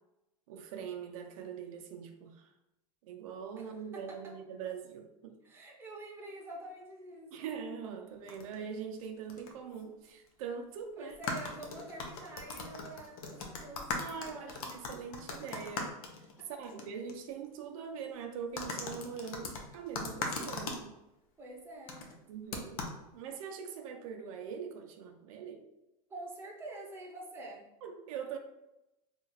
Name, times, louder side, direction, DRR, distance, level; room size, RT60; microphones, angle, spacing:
voice 1, 0.5-2.5 3.0-5.4 7.3-11.1 14.0-16.0 16.5-20.9 22.3-22.9 23.1-25.7 27.8-28.4, right 7 dB, 75° right, 4 dB, 0.5 m, -42 dB
voice 2, 3.6-4.4 5.4-7.5 11.0-14.6 16.4-16.6 21.4-22.1 26.1-27.7, right 2 dB, 15° right, -1 dB, 0.7 m, -47 dB
sound 1, 8.3-8.6 9.3-9.5 9.8-9.9 11.1-16.8 17.1-17.2 18.6-20.8 21.9-22.1 22.5-23.0, left 3 dB, 90° left, 0.7 m, -39 dB
2.9 x 2.4 x 4.0 m, 0.92 s
supercardioid pair, 145°, 18 cm